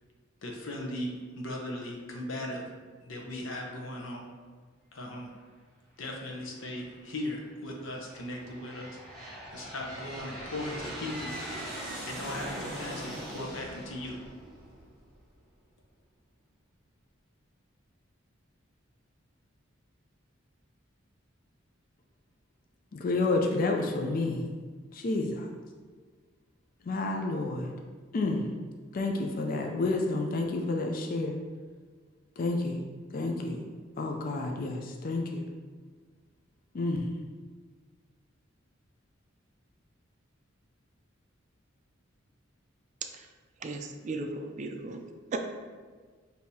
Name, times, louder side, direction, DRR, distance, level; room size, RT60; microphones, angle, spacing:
voice 1, 0.4-2.6 3.0-4.3 4.9-5.3 6.0-9.0 9.5-11.3 12.0-14.2, left 1 dB, 70° left, 0 dB, 0.8 m, -38 dB
Aircraft, 6.3-6.9 7.6-15.2, right 1 dB, ahead, 1.2 m, -41 dB
voice 2, 22.9-24.4 24.9-25.5 26.8-27.7 28.1-28.5 28.9-31.4 32.4-32.8 33.1-33.6 34.0-35.5 36.7-37.1, left 2 dB, 45° left, 2 dB, 0.4 m, -30 dB
voice 3, 43.6-45.0 45.3-45.4, right 3 dB, 35° right, 5 dB, 0.3 m, -36 dB
6.3 x 2.7 x 2.7 m, 1.5 s
head